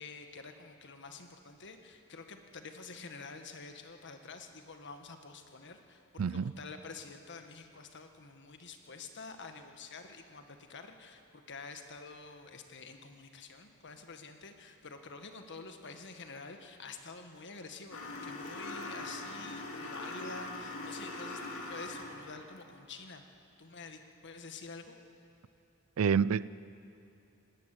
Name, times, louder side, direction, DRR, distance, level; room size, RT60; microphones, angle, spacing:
voice 1, 0.0-23.2 23.6-25.0, left 4 dB, 55° left, 6 dB, 1.6 m, -48 dB
voice 2, 6.2-6.5 26.0-26.5, right 6 dB, 70° right, 19 dB, 0.4 m, -28 dB
sound 1, 17.9-22.3, left 2 dB, 75° left, 2.6 m, -41 dB
19.5 x 19.0 x 9.2 m, 2.7 s
head